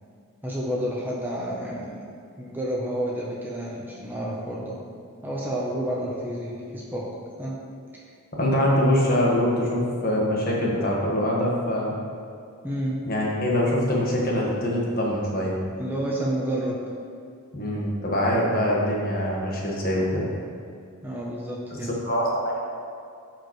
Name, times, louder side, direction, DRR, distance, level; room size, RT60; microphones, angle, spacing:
voice 1, 0.4-2.1 2.4-4.8 5.2-7.1 7.4-7.5 12.6-13.0 15.8-16.8 21.0-22.0, right 1 dB, 10° right, -4 dB, 0.7 m, -30 dB
voice 2, 8.4-11.9 13.1-15.6 17.5-20.3 22.0-22.6, left 1 dB, 40° left, -3 dB, 1.4 m, -24 dB
11.5 x 4.9 x 3.1 m, 2.4 s
head